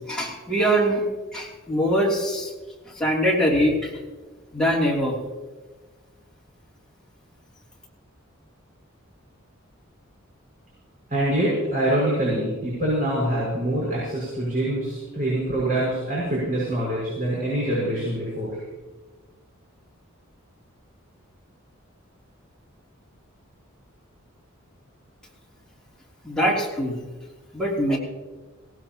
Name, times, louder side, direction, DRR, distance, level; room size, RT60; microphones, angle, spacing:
voice 1, 0.1-1.0 1.3-2.5 3.0-3.9 4.5-5.2 26.2-27.0 27.5-28.0, equal, 5° left, -4 dB, 3.2 m, -22 dB
voice 2, 11.1-18.5, right 1 dB, 40° right, -7 dB, 6.3 m, -25 dB
18.5 x 18.5 x 3.1 m, 1.3 s
head